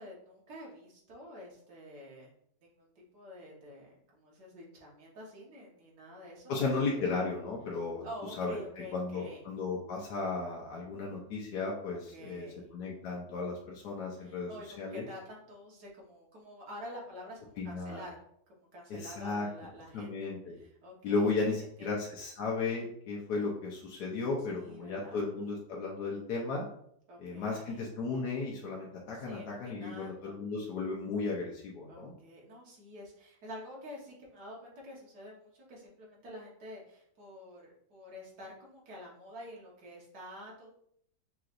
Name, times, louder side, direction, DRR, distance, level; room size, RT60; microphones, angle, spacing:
voice 1, 0.0-2.3 2.6-7.1 8.0-9.4 11.9-12.7 14.2-18.2 18.5-20.2 20.6-21.3 21.8-22.0 24.5-25.2 27.1-27.9 29.1-30.4 31.9-40.7, equal, 70° right, -3 dB, 1.8 m, -48 dB
voice 2, 6.5-8.0 8.4-8.6 8.9-14.5 14.8-15.0 17.6-18.0 18.9-19.5 19.9-20.6 21.0-26.6 27.2-32.1, left 3 dB, 70° left, -3 dB, 1.3 m, -35 dB
5.7 x 3.0 x 2.5 m, 0.69 s
omnidirectional pair, 1.9 m